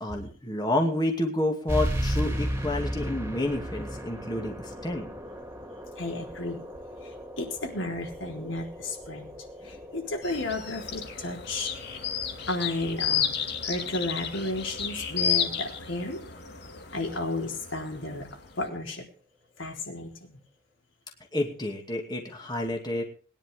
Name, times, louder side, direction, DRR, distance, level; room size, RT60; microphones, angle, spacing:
voice 1, 0.0-5.1 21.3-23.0, left 1 dB, 20° left, 2 dB, 2.5 m, -29 dB
sound 1, 1.7-16.8, equal, 10° right, 2.6 m, -36 dB
voice 2, 6.0-6.6 7.0-9.3 9.6-11.7 12.5-13.3 13.6-16.2 16.9-19.0 19.6-20.1, left 2 dB, 75° left, 1 dB, 4.1 m, -33 dB
sound 2, 10.2-18.6, left 7 dB, 55° left, 2.4 m, -32 dB
21.0 x 10.5 x 3.7 m, 0.41 s
head